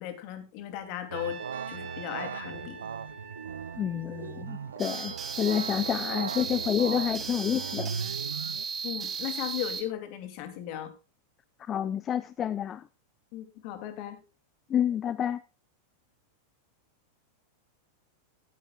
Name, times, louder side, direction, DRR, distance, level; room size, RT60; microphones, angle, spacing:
voice 1, 0.0-1.4 1.7-2.8 8.8-10.9 13.3-14.2, left 12 dB, 45° left, 2.5 m, -36 dB
Trumpet, 1.1-5.3, right 4 dB, 40° right, 3.6 m, -47 dB
sound 1, 1.1-8.6, right 7 dB, 70° right, 0.6 m, -38 dB
voice 2, 3.8-7.9 11.6-12.9 14.7-15.4, left 9 dB, 25° left, 0.6 m, -29 dB
sound 2, 4.8-9.8, right 5 dB, 25° right, 3.0 m, -35 dB
17.0 x 10.0 x 2.3 m
figure-of-eight pair, 90°, 0 cm